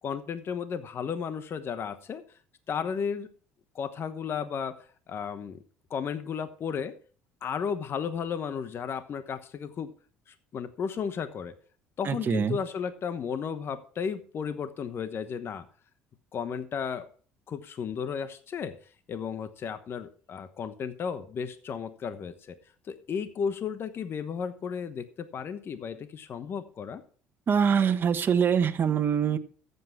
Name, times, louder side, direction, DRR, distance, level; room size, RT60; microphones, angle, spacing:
voice 1, 0.0-2.2 2.7-3.3 3.7-5.6 5.9-6.9 7.4-9.9 10.3-11.5 12.0-15.6 16.3-17.1 17.5-18.7 19.1-22.6 22.9-27.0, left 7 dB, 45° left, 11 dB, 1.1 m, -34 dB
voice 2, 12.0-12.6 27.5-29.4, right 7 dB, 40° right, 7 dB, 1.2 m, -24 dB
14.0 x 8.2 x 4.7 m, 0.43 s
supercardioid pair, 80°, 5 cm